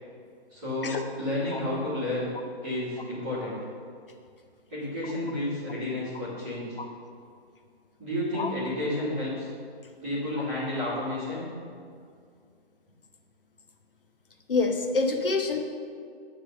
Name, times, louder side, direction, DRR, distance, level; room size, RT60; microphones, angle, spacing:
voice 1, 0.5-2.3 2.6-3.6 4.7-6.8 8.0-9.5 10.0-11.5, left 1 dB, 10° right, -11 dB, 1.3 m, -31 dB
voice 2, 14.5-15.7, left 3 dB, 55° left, 4 dB, 0.9 m, -26 dB
8.9 x 3.4 x 6.6 m, 2.3 s
hypercardioid pair, 175°, 32 cm